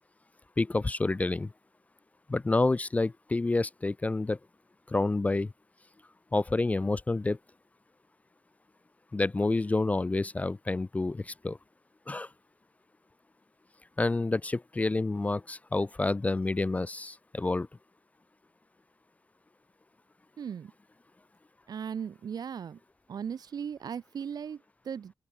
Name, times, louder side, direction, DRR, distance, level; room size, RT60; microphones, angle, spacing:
voice 1, 0.6-1.5 2.3-4.4 4.9-5.5 6.3-7.4 9.1-11.6 12.1-12.3 14.0-17.7, left 2 dB, 15° left, 0.4 m, -28 dB
voice 2, 20.4-20.7 21.7-22.8 23.1-25.1, right 7 dB, 55° right, 0.6 m, -37 dB
open air
wide cardioid pair, 125°, 8 cm